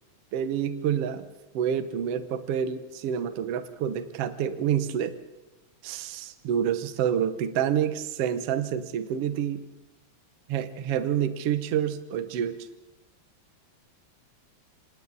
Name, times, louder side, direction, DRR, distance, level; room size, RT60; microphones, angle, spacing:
voice 1, 0.3-1.3 1.5-5.2 5.8-9.6 10.5-12.7, right 9 dB, 60° right, 10 dB, 1.9 m, -28 dB
29.5 x 27.0 x 4.1 m, 0.97 s
omnidirectional pair, 3.4 m